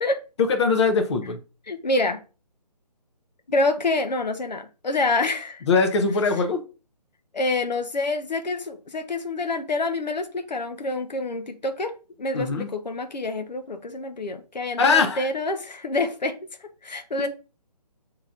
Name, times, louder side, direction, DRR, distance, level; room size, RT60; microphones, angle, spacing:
voice 1, 0.4-1.4 5.7-6.6 12.3-12.7 14.8-15.3 17.2-17.3, left 4 dB, 40° left, 0.7 m, -21 dB
voice 2, 1.7-2.2 3.5-5.6 7.3-11.9 12.2-16.4 16.8-17.3, left 2 dB, 90° left, 0.8 m, -27 dB
7.4 x 2.9 x 2.4 m
figure-of-eight pair, 155°, 21 cm